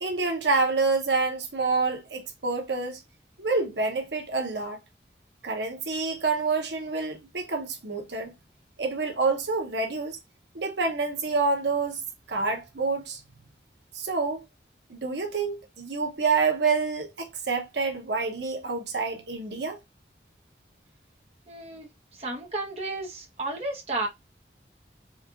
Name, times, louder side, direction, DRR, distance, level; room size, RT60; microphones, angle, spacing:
voice 1, 0.0-3.0 3.4-4.8 5.4-8.3 8.8-10.2 10.5-12.0 12.3-13.2 13.9-14.4 14.9-19.8, right 4 dB, 75° right, 1.0 m, -27 dB
voice 2, 21.5-24.1, right 2 dB, 35° right, 1.1 m, -33 dB
4.3 x 2.5 x 3.7 m
head